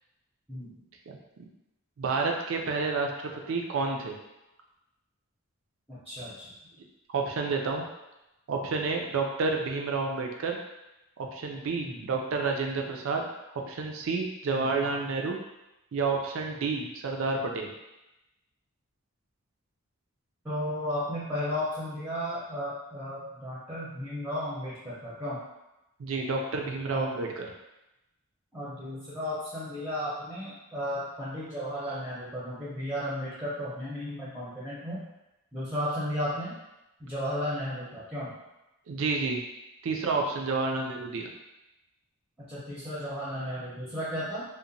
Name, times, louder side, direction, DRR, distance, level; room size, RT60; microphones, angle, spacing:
voice 1, 1.1-1.4 2.0-4.2 7.1-7.9 8.5-10.6 11.2-13.2 13.7-15.4 15.9-17.7 26.0-27.5 38.9-39.4 39.8-41.3, right 4 dB, 65° right, 2 dB, 0.4 m, -30 dB
voice 2, 5.9-6.5 11.8-12.1 14.5-14.7 20.4-25.4 26.9-27.1 28.5-35.0 35.5-36.5 37.0-38.3 40.7-40.8 42.5-44.4, equal, 10° right, -9 dB, 0.6 m, -34 dB
2.8 x 2.1 x 2.6 m, 0.95 s
head